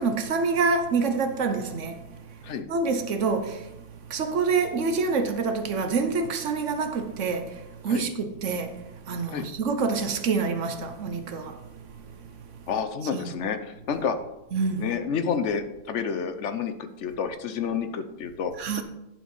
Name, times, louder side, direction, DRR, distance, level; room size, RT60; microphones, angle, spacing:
voice 1, 0.0-12.6 13.1-13.3 14.5-14.8 18.6-18.8, right 4 dB, 70° right, 1.2 m, -27 dB
voice 2, 12.7-14.2 14.8-18.5, left 6 dB, 70° left, 1.0 m, -29 dB
11.0 x 4.6 x 5.4 m
omnidirectional pair, 1.3 m